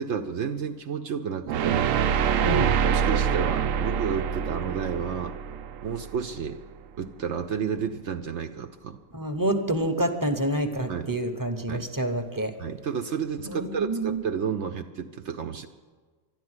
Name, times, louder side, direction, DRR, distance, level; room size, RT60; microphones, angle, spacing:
voice 1, 0.0-2.0 2.9-5.4 5.8-6.6 7.0-9.0 10.9-11.1 11.7-11.9 12.6-15.7, right 6 dB, 65° right, 7 dB, 0.9 m, -31 dB
sound 1, 1.5-6.5, right 8 dB, 90° right, 1.0 m, -25 dB
voice 2, 2.4-2.7 9.1-12.5 13.4-14.2, right 1 dB, 15° right, 6 dB, 0.9 m, -28 dB
12.0 x 11.0 x 9.6 m, 1.5 s
omnidirectional pair, 1.3 m